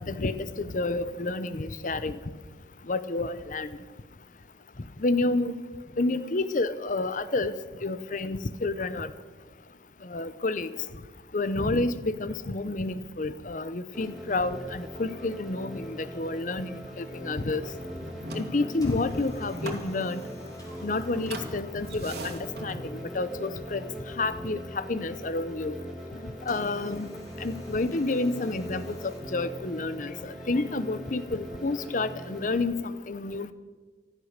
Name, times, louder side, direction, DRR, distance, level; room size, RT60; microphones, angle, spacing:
voice 1, 0.0-2.2 2.9-3.8 5.0-5.6 6.0-7.5 7.8-9.1 10.0-10.7 11.3-17.6 18.3-20.2 20.8-23.8 24.2-25.8 26.5-27.1 27.4-33.5, left 2 dB, 45° left, 14 dB, 0.7 m, -29 dB
sound 1, 13.9-32.6, equal, ahead, 2.6 m, -41 dB
sound 2, 17.5-23.2, right 1 dB, 65° right, 2.4 m, -41 dB
sound 3, 18.8-22.7 26.5-29.2, equal, 20° left, 3.7 m, -54 dB
14.5 x 13.0 x 6.6 m, 1.4 s
head